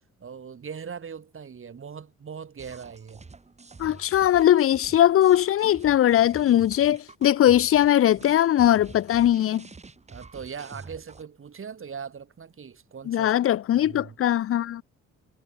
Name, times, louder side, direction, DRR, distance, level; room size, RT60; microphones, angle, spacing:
voice 1, 0.2-3.2 10.1-13.3 13.7-14.2, right 6 dB, 45° right, 5.9 m, -40 dB
sound 1, 2.6-11.2, right 4 dB, 20° right, 1.7 m, -47 dB
voice 2, 3.8-9.7 13.1-14.8, left 12 dB, 50° left, 0.5 m, -20 dB
cardioid pair, 90°, 30 cm